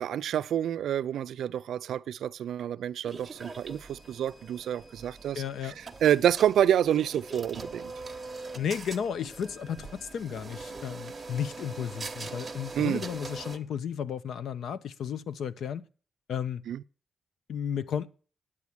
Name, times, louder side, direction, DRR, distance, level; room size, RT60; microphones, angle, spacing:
voice 1, 0.0-5.7 6.0-7.9 12.8-13.0 16.7-16.8, right 10 dB, 85° right, 0.5 m, -28 dB
sound 1, 3.0-13.6, right 3 dB, 15° right, 1.1 m, -42 dB
voice 2, 5.3-5.7 8.5-15.8 16.3-16.6 17.5-18.1, left 8 dB, 75° left, 0.7 m, -33 dB
9.9 x 8.5 x 6.1 m
wide cardioid pair, 170°, 0 cm